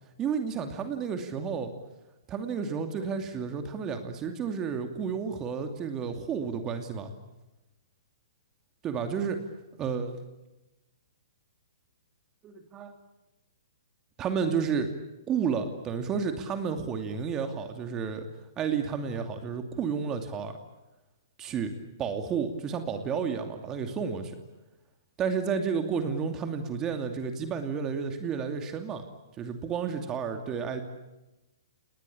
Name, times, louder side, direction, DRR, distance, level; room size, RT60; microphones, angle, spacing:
voice 1, 0.2-1.7 2.3-7.1 8.8-9.4 9.8-10.2 12.4-12.9 14.2-14.9 15.3-18.3 18.6-20.5 21.4-21.7 22.0-24.4 25.2-29.0 29.4-30.8, right 6 dB, 25° right, 6 dB, 2.6 m, -31 dB
30.0 x 20.0 x 8.6 m, 1.0 s
hypercardioid pair, 125°, 2 cm